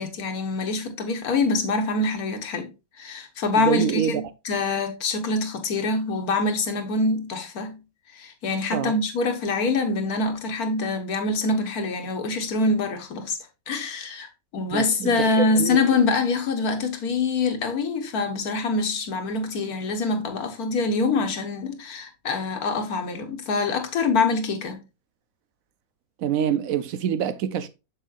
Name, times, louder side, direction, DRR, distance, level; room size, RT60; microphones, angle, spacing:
voice 1, 0.0-2.7 3.0-7.8 8.1-13.4 13.7-24.8, left 3 dB, 80° left, 1.7 m, -25 dB
voice 2, 3.6-4.2 8.7-8.9 14.7-15.8 26.2-27.7, right 9 dB, 70° right, 1.0 m, -26 dB
7.4 x 6.8 x 2.4 m
omnidirectional pair, 1.5 m